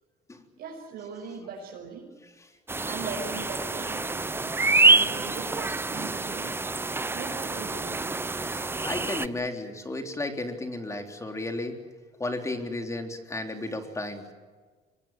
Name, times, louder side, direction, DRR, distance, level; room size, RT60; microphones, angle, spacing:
voice 1, 0.6-2.1 2.8-6.6 7.1-8.5, right 5 dB, 70° right, -2 dB, 6.1 m, -40 dB
sound 1, 2.7-9.3, right 3 dB, 15° right, 0.7 m, -26 dB
voice 2, 8.4-11.8 12.2-14.3, left 2 dB, 15° left, 4 dB, 3.6 m, -33 dB
25.0 x 23.0 x 7.7 m, 1.4 s
cardioid pair, 110°, 17 cm